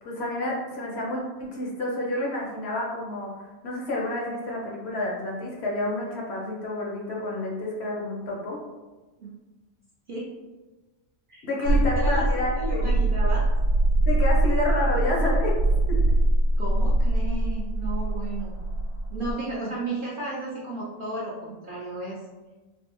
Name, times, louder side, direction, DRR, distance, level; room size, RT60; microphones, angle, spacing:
voice 1, 0.0-3.3 3.6-8.6 11.4-12.9 14.1-15.6 15.9-16.0, left 2 dB, 60° left, -2 dB, 0.8 m, -29 dB
sound 1, 11.6-19.3, right 1 dB, 85° right, 1.0 m, -23 dB
voice 2, 12.6-13.5 16.6-18.6 19.1-22.2, right 2 dB, 60° right, -6 dB, 0.6 m, -33 dB
3.3 x 2.0 x 2.9 m, 1.2 s
omnidirectional pair, 1.4 m